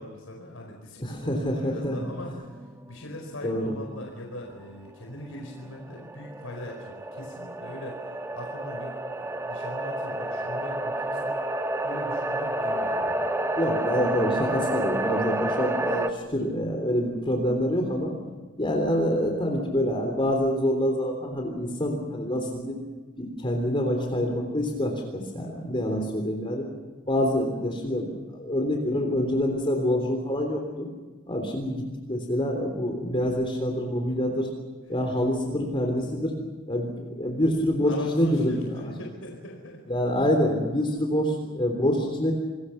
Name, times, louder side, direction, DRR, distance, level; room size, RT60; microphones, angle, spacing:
voice 1, 0.0-2.3 2.9-11.4 11.8-13.4 15.0-15.3 18.2-18.4 25.4-25.7 33.9-34.0 37.8-39.8, left 1 dB, 85° left, 0 dB, 4.8 m, -40 dB
voice 2, 1.0-2.3 3.4-3.8 13.6-18.1 18.6-22.8 23.2-26.7 27.1-28.1 28.4-30.9 31.3-34.5 34.9-36.4 36.7-38.9 39.9-42.3, equal, 25° left, 2 dB, 3.5 m, -26 dB
sound 1, 1.8-4.4 4.7-4.8 5.5-16.1, right 1 dB, 10° right, 1.2 m, -30 dB
28.0 x 21.5 x 5.9 m, 1.4 s
head